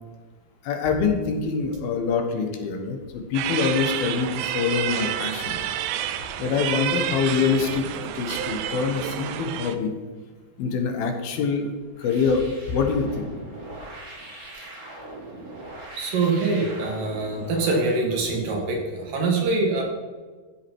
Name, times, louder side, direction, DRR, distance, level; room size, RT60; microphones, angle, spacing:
voice 1, 0.6-4.3 4.5-5.6 6.4-9.9 10.6-11.7 12.0-13.2, left 5 dB, 75° left, 4 dB, 3.0 m, -25 dB
sound 1, 3.3-9.8, right 10 dB, 85° right, 2.6 m, -29 dB
sound 2, 11.9-18.0, right 1 dB, 20° right, 2.9 m, -41 dB
voice 2, 15.9-19.8, right 3 dB, 65° right, 0 dB, 3.3 m, -24 dB
14.0 x 7.5 x 4.6 m, 1.4 s
omnidirectional pair, 4.4 m